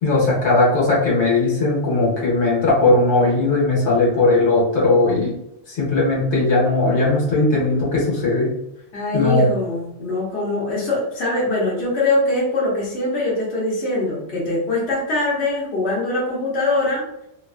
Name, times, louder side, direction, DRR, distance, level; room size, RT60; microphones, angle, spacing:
voice 1, 0.0-5.3 5.7-8.5 9.1-9.5, left 2 dB, 90° left, -5 dB, 1.3 m, -18 dB
voice 2, 8.9-17.1, left 2 dB, 70° left, -5 dB, 1.2 m, -22 dB
2.8 x 2.3 x 2.4 m, 0.80 s
omnidirectional pair, 1.1 m